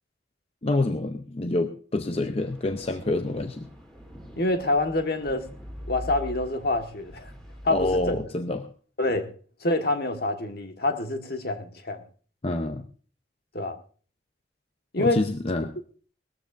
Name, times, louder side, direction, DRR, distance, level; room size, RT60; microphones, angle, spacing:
voice 1, 0.6-3.7 7.7-8.7 12.4-12.8 15.0-15.7, left 2 dB, 35° left, 0.7 m, -27 dB
sound 1, 2.4-8.2, equal, 5° left, 3.2 m, -43 dB
voice 2, 4.3-5.5 5.9-7.3 7.6-8.2 9.0-9.3 9.6-12.0 13.5-13.8 14.9-15.2, left 2 dB, 60° left, 1.6 m, -26 dB
19.5 x 14.0 x 2.6 m
head